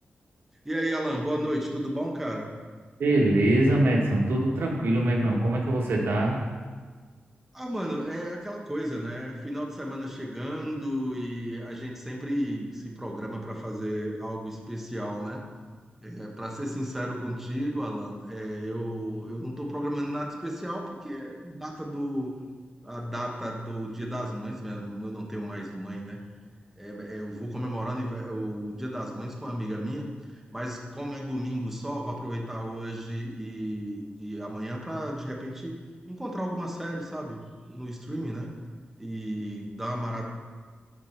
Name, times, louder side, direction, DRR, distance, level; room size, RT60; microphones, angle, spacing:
voice 1, 0.6-2.5 7.5-15.4 16.0-22.4 22.8-26.2 26.8-35.7 36.1-38.5 39.0-40.3, equal, 5° right, -1 dB, 1.1 m, -33 dB
voice 2, 3.0-6.4, right 1 dB, 80° right, -2 dB, 1.6 m, -23 dB
12.0 x 4.7 x 4.5 m, 1.5 s
wide cardioid pair, 155°, 4 cm